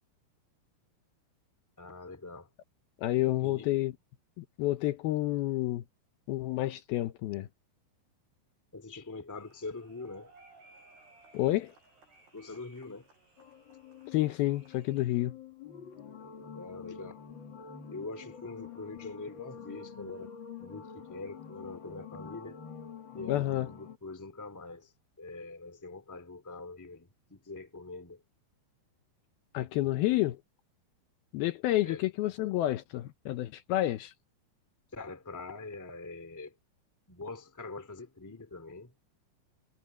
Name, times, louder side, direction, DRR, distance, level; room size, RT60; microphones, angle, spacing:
voice 1, 1.8-2.5 3.4-3.7 8.7-10.3 12.3-13.1 16.5-17.2 17.9-22.6 23.1-28.2 31.8-32.0 34.9-36.5 37.1-38.9, left 3 dB, 5° left, 1.7 m, -44 dB
voice 2, 3.0-3.9 4.4-5.8 6.3-7.5 11.3-11.7 14.1-15.3 23.3-23.7 29.5-30.4 31.3-34.1, left 16 dB, 75° left, 2.5 m, -29 dB
sound 1, 9.4-15.3, right 3 dB, 75° right, 10.0 m, -60 dB
sound 2, 13.4-24.0, left 7 dB, 45° left, 1.6 m, -47 dB
omnidirectional pair, 4.7 m